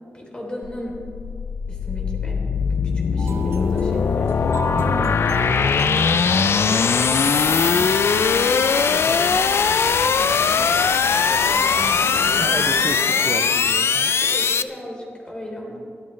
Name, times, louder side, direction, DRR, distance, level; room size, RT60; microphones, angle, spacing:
voice 1, 0.1-1.0 1.7-2.4 2.7-4.5 5.0-9.5 10.0-11.0 11.3-12.8 13.1-13.3 14.2-15.8, equal, 20° left, -1 dB, 3.4 m, -35 dB
sound 1, 0.6-14.6, left 6 dB, 70° left, 0.5 m, -20 dB
sound 2, 3.2-11.0, right 5 dB, 70° right, 0.8 m, -37 dB
sound 3, 3.3-12.4, right 1 dB, 15° right, 3.2 m, -42 dB
voice 2, 4.8-5.2 12.4-14.1, right 4 dB, 35° right, 9 dB, 0.4 m, -31 dB
24.0 x 13.0 x 3.2 m, 2.5 s
wide cardioid pair, 130°, 4 cm